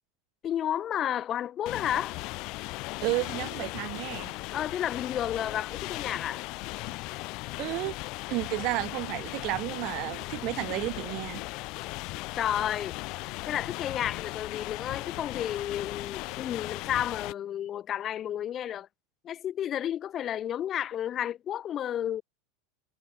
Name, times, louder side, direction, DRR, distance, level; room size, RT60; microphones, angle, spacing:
voice 1, 0.4-2.2 4.5-6.4 12.3-13.0 13.5-18.9 19.2-22.2, left 10 dB, 35° left, 6.5 m, -31 dB
sound 1, 1.7-17.3, left 24 dB, 55° left, 1.6 m, -37 dB
voice 2, 3.0-4.3 7.6-7.9 8.3-11.4, right 22 dB, 55° right, 3.3 m, -32 dB
hypercardioid pair, 105°, 0 cm